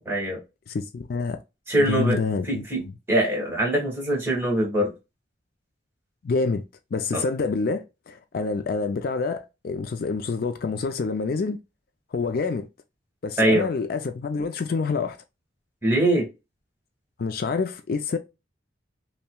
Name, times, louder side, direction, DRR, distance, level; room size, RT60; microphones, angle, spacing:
voice 1, 0.1-0.4 1.7-2.2 2.5-2.8 3.1-4.9 7.1-7.2 13.4-13.7 15.8-16.3, right 1 dB, 15° right, 1.5 m, -22 dB
voice 2, 0.7-1.4 1.8-2.9 6.2-6.6 6.9-11.6 12.1-12.7 13.2-15.2 17.2-18.2, left 4 dB, 50° left, 0.4 m, -27 dB
5.5 x 2.1 x 2.2 m
head